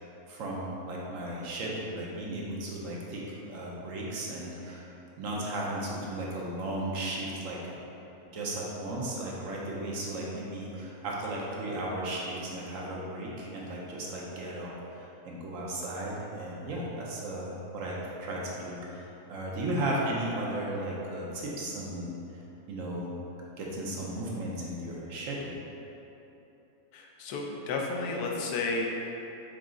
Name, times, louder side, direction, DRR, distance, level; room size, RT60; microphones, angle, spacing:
voice 1, 0.0-4.9 5.2-7.6 8.2-22.1 22.7-23.1 23.6-25.5, right 1 dB, 65° right, -4 dB, 1.0 m, -35 dB
voice 2, 26.9-28.9, left 3 dB, 90° left, 0 dB, 1.1 m, -32 dB
4.9 x 2.4 x 3.7 m, 3.0 s
omnidirectional pair, 1.6 m